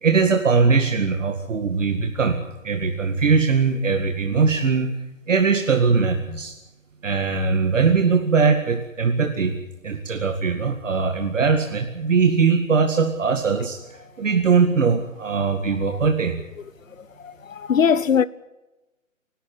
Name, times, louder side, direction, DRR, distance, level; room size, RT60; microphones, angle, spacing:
voice 1, 0.0-2.4 2.6-5.0 5.3-6.5 7.0-9.6 9.8-13.8 14.2-16.4, right 5 dB, 65° right, 2.2 m, -20 dB
voice 2, 17.2-18.3, left 7 dB, 75° left, 0.9 m, -20 dB
28.5 x 13.0 x 9.3 m
hypercardioid pair, 175°, 40 cm